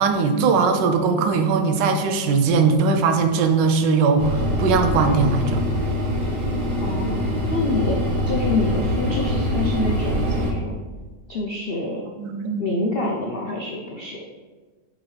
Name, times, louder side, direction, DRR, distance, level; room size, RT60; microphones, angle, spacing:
voice 1, 0.0-5.6 12.2-12.7, right 4 dB, 85° right, 6 dB, 1.3 m, -20 dB
sound 1, 4.2-10.5, equal, 65° right, 1.7 m, -24 dB
voice 2, 6.8-7.2 7.5-8.0 8.3-10.7 11.3-12.0 12.6-14.2, left 3 dB, 85° left, -1 dB, 0.5 m, -26 dB
7.4 x 4.0 x 3.2 m, 1.3 s
omnidirectional pair, 1.9 m